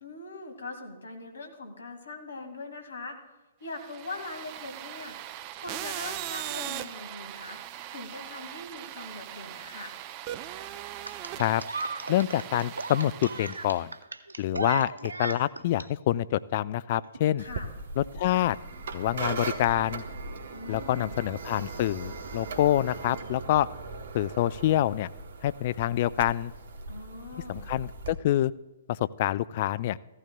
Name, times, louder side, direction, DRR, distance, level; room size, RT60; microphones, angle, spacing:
voice 1, 0.0-3.2 3.6-5.2 5.6-7.6 7.9-9.9 17.4-17.7 20.5-21.1 26.9-27.6, left 3 dB, 70° left, 5 dB, 2.0 m, -41 dB
sound 1, 3.7-13.9, right 12 dB, 35° right, 0.5 m, -40 dB
sound 2, 11.1-15.9 17.0-17.2, right 3 dB, 80° right, 0.6 m, -35 dB
voice 2, 12.1-13.9 14.4-17.4 18.0-18.6 18.9-20.0 20.7-23.7 24.1-25.1 25.4-26.5 27.5-28.5 28.9-30.0, left 13 dB, 45° left, 17 dB, 0.3 m, -26 dB
sound 3, 17.4-28.1, right 3 dB, 60° right, 1.0 m, -39 dB
15.0 x 14.5 x 2.3 m, 1.0 s
figure-of-eight pair, 120°, 0 cm